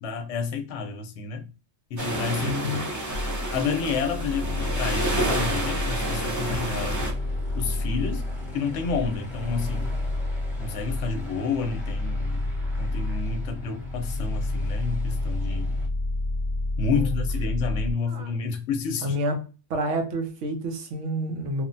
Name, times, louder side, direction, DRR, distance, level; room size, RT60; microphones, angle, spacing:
voice 1, 0.0-1.5 1.9-2.8 3.5-7.0 7.5-8.3 8.5-9.9 10.6-12.5 12.8-15.7 16.8-19.2, left 5 dB, 70° left, 0.8 m, -30 dB
sound 1, 2.0-7.1, right 2 dB, 25° right, 0.4 m, -30 dB
voice 2, 2.4-2.8 16.9-17.2 18.1-18.3 19.0-19.4 19.7-21.6, equal, 75° right, 1.0 m, -29 dB
sound 2, 3.1-17.9, left 2 dB, 50° left, 0.9 m, -30 dB
Aircraft, 4.3-15.9, left 2 dB, ahead, 0.7 m, -41 dB
3.0 x 2.1 x 2.5 m
omnidirectional pair, 1.3 m